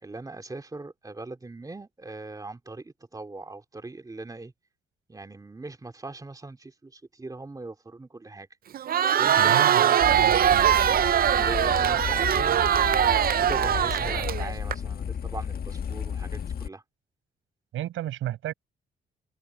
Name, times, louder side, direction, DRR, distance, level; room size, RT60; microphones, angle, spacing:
voice 1, 0.0-4.5 5.1-8.5 9.2-10.0 11.4-12.6 13.2-16.8, right 2 dB, 20° right, 2.8 m, -40 dB
Crowd, 8.7-14.7, right 10 dB, 50° right, 0.6 m, -22 dB
voice 2, 9.4-10.9 17.7-18.5, right 13 dB, 80° right, 7.7 m, -32 dB
sound 1, 10.0-16.7, left 7 dB, 50° left, 1.4 m, -33 dB
open air
cardioid pair, 90°, 20 cm